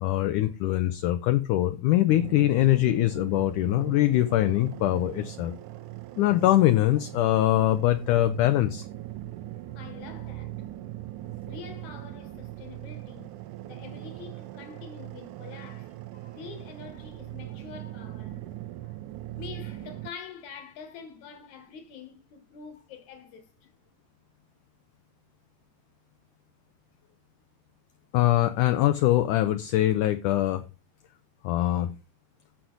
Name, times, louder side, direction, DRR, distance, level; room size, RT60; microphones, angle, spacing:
voice 1, 0.0-5.5 6.2-8.9 28.1-30.6 31.4-31.9, left 14 dB, 80° left, 1.8 m, -23 dB
sound 1, 2.1-20.1, right 15 dB, 80° right, 1.8 m, -40 dB
voice 2, 9.7-10.7 11.4-13.3 13.6-18.5 18.8-19.0 19.3-23.7, left 6 dB, 60° left, 2.4 m, -46 dB
14.0 x 6.4 x 3.8 m
omnidirectional pair, 4.3 m